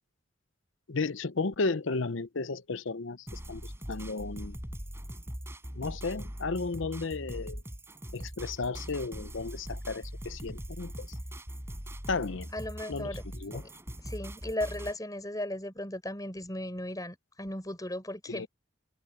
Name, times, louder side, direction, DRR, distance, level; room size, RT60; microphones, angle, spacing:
voice 1, 0.9-4.6 5.8-7.6 8.1-11.1 12.1-12.5 12.9-13.6 18.3-18.5, left 3 dB, 75° left, 0.8 m, -34 dB
sound 1, 3.3-15.0, equal, 15° right, 4.8 m, -41 dB
voice 2, 12.5-13.3 13.5-13.7 14.0-18.5, left 1 dB, 20° left, 7.1 m, -36 dB
head